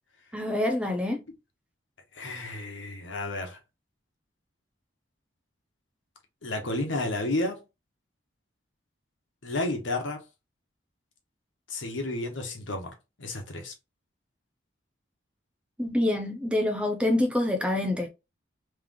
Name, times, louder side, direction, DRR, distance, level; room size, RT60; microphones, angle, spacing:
voice 1, 0.3-1.2 15.8-18.1, left 1 dB, 5° right, 0.6 m, -26 dB
voice 2, 2.2-3.6 6.4-7.6 9.4-10.2 11.7-12.9 13.2-13.7, left 2 dB, 85° left, 1.2 m, -31 dB
3.3 x 3.2 x 3.7 m
head